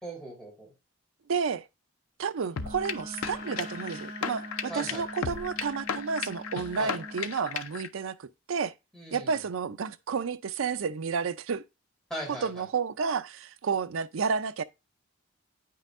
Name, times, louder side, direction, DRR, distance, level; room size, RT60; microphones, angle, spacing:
voice 1, 0.0-0.7 4.7-5.1 6.8-7.0 8.9-9.4 12.1-12.7, equal, ahead, 3.6 m, -39 dB
voice 2, 1.3-1.7 2.2-8.7 9.1-11.6 12.3-14.6, right 5 dB, 70° right, 0.5 m, -31 dB
Wind instrument woodwind instrument, 2.5-7.3, equal, 25° right, 1.7 m, -43 dB
sound 1, 2.6-7.9, left 6 dB, 90° left, 0.6 m, -35 dB
9.0 x 5.6 x 2.5 m
head